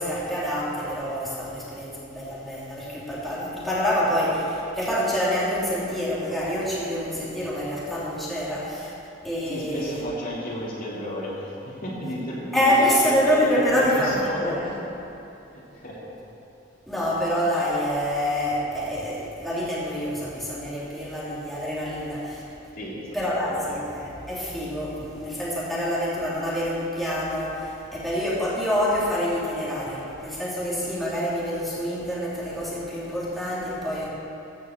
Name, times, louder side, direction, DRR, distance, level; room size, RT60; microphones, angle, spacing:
voice 1, 0.0-8.9 9.2-10.0 12.5-14.7 16.9-22.4 23.1-34.1, equal, ahead, -8 dB, 3.0 m, -26 dB
voice 2, 9.5-14.5 15.5-16.0 22.7-23.0 23.2-23.6, equal, 50° left, -6 dB, 3.0 m, -32 dB
14.0 x 6.5 x 7.5 m, 2.8 s
head